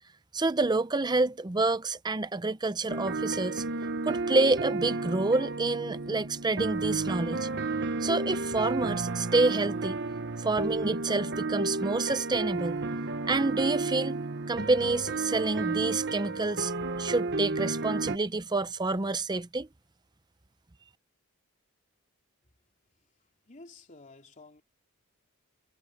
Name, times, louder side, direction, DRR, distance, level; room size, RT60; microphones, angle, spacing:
voice 1, 0.3-3.6 4.1-7.5 8.0-10.0 10.4-12.8 13.3-16.7 17.0-19.7, right 3 dB, 20° right, 0.6 m, -28 dB
sound 1, 2.9-18.2, right 3 dB, 55° right, 1.1 m, -32 dB
voice 2, 23.0-24.6, left 3 dB, 35° left, 3.4 m, -53 dB
head